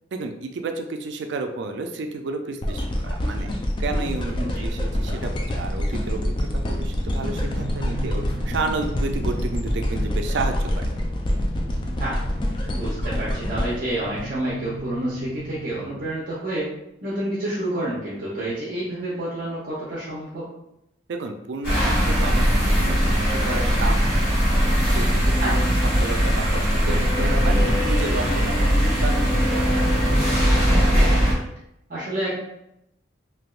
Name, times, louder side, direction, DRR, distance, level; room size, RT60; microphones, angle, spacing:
voice 1, 0.1-3.5 3.8-10.9 21.1-30.4, right 3 dB, 65° right, 5 dB, 0.4 m, -32 dB
sound 1, 2.6-14.8 15.4-15.5, left 1 dB, 25° left, 0.4 m, -26 dB
sound 2, 4.3-16.1, right 1 dB, 15° right, 0.9 m, -39 dB
voice 2, 12.7-16.7 17.0-20.4 25.4-25.6 31.9-32.3, right 1 dB, 45° right, -7 dB, 0.7 m, -29 dB
sound 3, 21.6-31.3, equal, 50° left, 1.2 m, -20 dB
3.3 x 2.9 x 2.4 m, 0.81 s
head